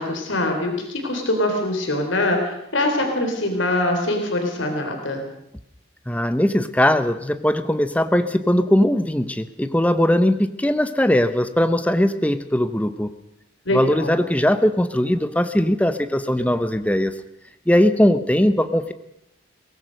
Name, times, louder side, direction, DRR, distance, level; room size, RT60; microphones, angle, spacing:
voice 1, 0.0-5.2 13.7-14.1, left 1 dB, 75° left, 3 dB, 3.8 m, -23 dB
voice 2, 6.1-13.1 13.7-17.2 17.7-18.9, left 1 dB, 5° left, 10 dB, 0.8 m, -20 dB
22.5 x 18.5 x 6.5 m, 0.78 s
head